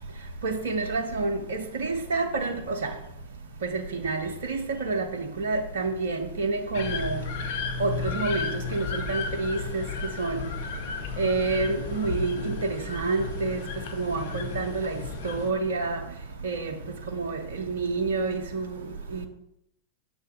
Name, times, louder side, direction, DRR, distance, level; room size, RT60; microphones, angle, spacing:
voice 1, 0.4-2.9 3.7-5.1 5.4-7.2 7.8-9.8 10.2-10.4 11.2-13.6 14.0-14.9 15.2-16.0 16.4-16.8 17.2-18.8, right 3 dB, 65° right, 0.6 m, -28 dB
sound 1, 6.7-15.5, left 5 dB, 50° left, 0.6 m, -34 dB
6.4 x 2.7 x 5.5 m
figure-of-eight pair, 90°, 0 cm